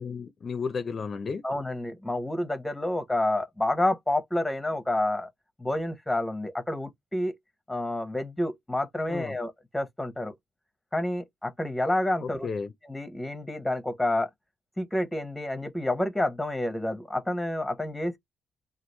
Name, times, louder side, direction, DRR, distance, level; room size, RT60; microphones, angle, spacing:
voice 1, 0.0-1.4 9.1-9.4 12.2-12.7, left 5 dB, 45° left, 0.4 m, -33 dB
voice 2, 1.4-5.3 5.6-7.4 7.7-10.3 10.9-12.5 12.9-14.3 14.8-18.2, left 1 dB, 10° left, 0.7 m, -29 dB
2.9 x 2.4 x 3.3 m
cardioid pair, 90°, 0 cm